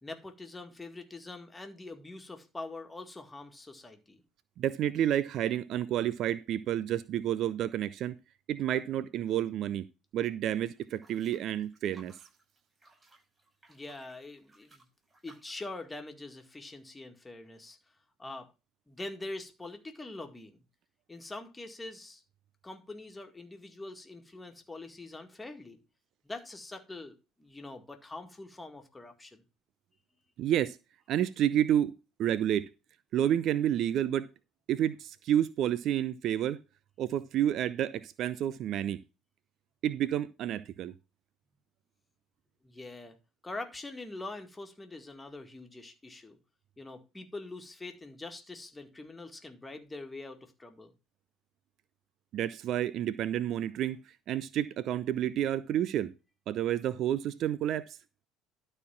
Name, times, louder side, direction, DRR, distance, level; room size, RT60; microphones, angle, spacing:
voice 1, 0.0-4.2 13.7-14.8 15.2-17.8 18.2-18.5 18.9-20.6 21.1-22.2 22.6-25.8 26.2-29.4 42.6-43.2 43.4-46.4 46.8-50.9, left 2 dB, 15° left, 2.0 m, -44 dB
voice 2, 4.6-8.2 8.5-9.9 10.1-12.1 30.4-30.8 31.1-31.9 32.2-32.7 33.1-34.3 34.7-36.6 37.0-39.0 39.8-40.9 52.3-54.0 54.3-56.1 56.5-58.0, right 11 dB, 50° right, 0.4 m, -30 dB
sound 1, 10.7-15.8, right 2 dB, 10° right, 6.5 m, -61 dB
12.0 x 4.4 x 5.8 m
figure-of-eight pair, 55°, 0 cm